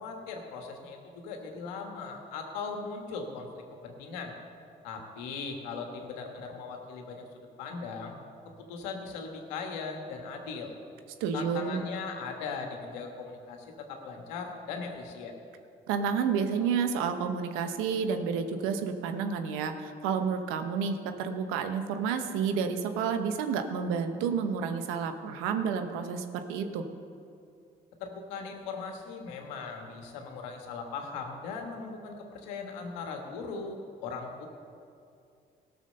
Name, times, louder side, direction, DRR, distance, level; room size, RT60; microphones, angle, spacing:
voice 1, 0.0-4.3 4.8-7.2 7.6-8.2 8.6-10.7 11.3-15.3 28.0-33.8 34.0-34.5, left 4 dB, 90° left, 3 dB, 1.5 m, -39 dB
voice 2, 11.2-11.9 15.9-26.9, right 6 dB, 80° right, 7 dB, 1.0 m, -30 dB
17.0 x 6.4 x 6.6 m, 2.4 s
hypercardioid pair, 50°, 21 cm